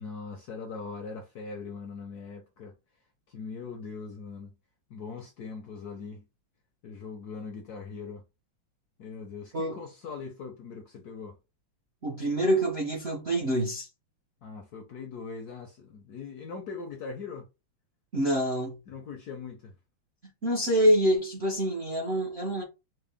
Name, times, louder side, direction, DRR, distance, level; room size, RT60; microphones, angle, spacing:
voice 1, 0.0-2.8 3.3-4.6 4.9-6.3 6.8-8.2 9.0-11.4 14.4-17.5 18.9-19.7, left 5 dB, 70° left, 0.9 m, -41 dB
voice 2, 12.0-13.9 18.1-18.8 20.4-22.6, equal, 60° right, 0.6 m, -26 dB
4.6 x 2.1 x 3.4 m
omnidirectional pair, 2.3 m